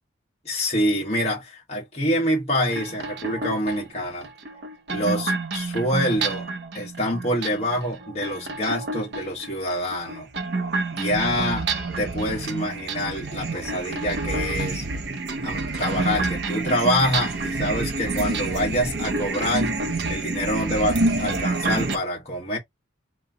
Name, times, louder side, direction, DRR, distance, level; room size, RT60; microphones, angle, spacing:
voice 1, 0.4-4.3 4.9-6.5 6.7-10.3 10.9-11.7 12.0-14.8 15.4-19.8 20.1-22.6, equal, 35° left, 1.5 m, -26 dB
sound 1, 2.7-22.0, right 3 dB, 55° right, 0.7 m, -28 dB
3.2 x 3.0 x 3.8 m
head